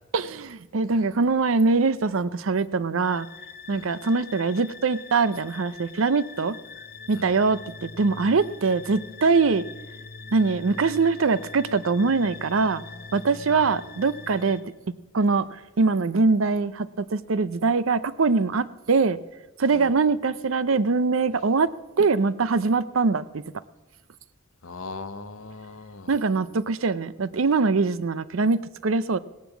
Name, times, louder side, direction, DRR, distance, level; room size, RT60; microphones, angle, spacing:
voice 1, 0.1-3.3 3.7-6.6 7.1-9.6 10.3-12.8 13.1-14.6 15.1-19.2 19.6-21.7 22.0-23.4 26.1-29.2, right 4 dB, 70° right, 16 dB, 0.6 m, -23 dB
sound 1, 3.0-14.6, left 4 dB, 50° left, 0.8 m, -43 dB
voice 2, 24.6-26.2, left 3 dB, 75° left, 11 dB, 1.0 m, -40 dB
17.5 x 10.5 x 7.2 m, 1.1 s
head